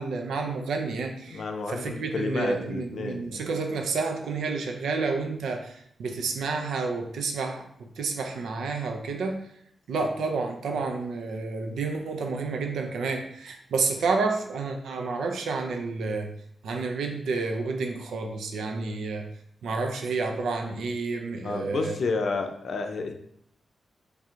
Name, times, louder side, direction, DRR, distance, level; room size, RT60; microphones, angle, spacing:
voice 1, 0.0-5.7 6.0-7.6 8.0-9.4 9.9-16.3 16.6-19.3 19.6-22.0, right 4 dB, 80° right, 3 dB, 0.5 m, -30 dB
voice 2, 1.3-3.4 21.4-23.1, left 4 dB, 70° left, 5 dB, 0.5 m, -30 dB
3.3 x 2.4 x 4.4 m, 0.70 s
supercardioid pair, 40°, 0 cm